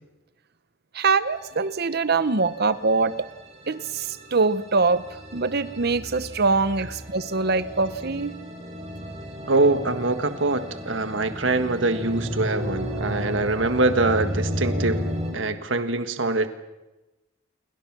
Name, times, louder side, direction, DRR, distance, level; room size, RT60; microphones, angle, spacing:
voice 1, 0.9-3.3 3.7-5.0 5.3-8.4, right 4 dB, 55° right, 15 dB, 0.9 m, -23 dB
sound 1, 1.3-15.3, equal, 35° right, 7.2 m, -33 dB
voice 2, 9.5-15.0 15.3-16.6, right 2 dB, 75° right, 9 dB, 1.6 m, -23 dB
28.5 x 24.0 x 6.1 m, 1.1 s
head